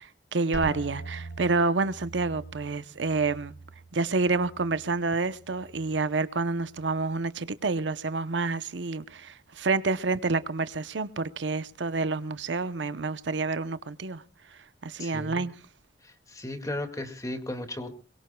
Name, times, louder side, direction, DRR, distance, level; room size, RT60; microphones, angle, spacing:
voice 1, 0.0-3.5 3.9-14.2 14.5-15.6, right 3 dB, 85° right, 0.8 m, -28 dB
sound 1, 0.5-6.2 6.5-7.2 7.7-8.1, right 1 dB, 90° left, 2.9 m, -43 dB
voice 2, 15.0-15.4 16.0-17.9, left 1 dB, 20° left, 2.1 m, -35 dB
22.5 x 22.0 x 2.3 m
head